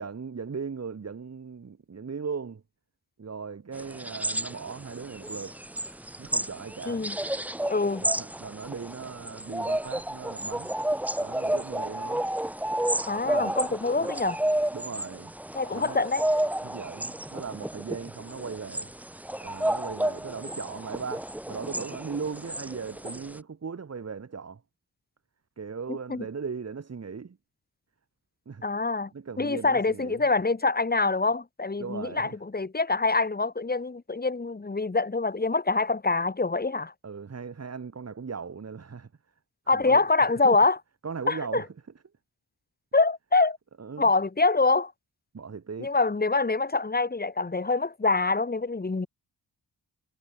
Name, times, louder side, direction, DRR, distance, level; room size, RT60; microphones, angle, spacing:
voice 1, 0.0-2.6 3.2-5.6 6.2-7.1 8.0-10.7 11.2-12.3 13.2-14.1 14.7-15.3 15.7-16.0 16.6-18.9 19.4-24.6 25.6-27.4 28.5-28.6 29.1-30.2 31.8-32.4 37.0-39.1 39.7-40.1 40.4-40.6 41.0-41.7 43.8-44.1 45.3-46.0, right 5 dB, 40° right, 3.6 m, -38 dB
sound 1, 3.7-23.4, right 1 dB, 5° right, 0.7 m, -31 dB
voice 2, 6.9-7.2 7.7-8.0 13.1-14.4 15.5-16.2 25.9-26.3 28.6-29.1 29.4-36.9 39.7-40.8 41.3-41.6 42.9-43.6 44.0-44.9 45.8-49.1, left 3 dB, 25° left, 4.2 m, -25 dB
wide cardioid pair, 160°, 38 cm